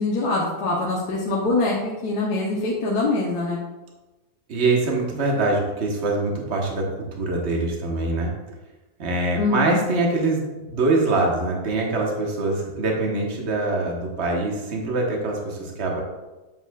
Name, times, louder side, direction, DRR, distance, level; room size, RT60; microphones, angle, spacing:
voice 1, 0.0-3.6 9.4-9.7, left 2 dB, 75° left, -4 dB, 1.5 m, -24 dB
voice 2, 4.5-8.3 9.0-16.0, right 2 dB, 45° right, 0 dB, 1.3 m, -24 dB
7.8 x 5.5 x 2.3 m, 1.1 s
omnidirectional pair, 1.7 m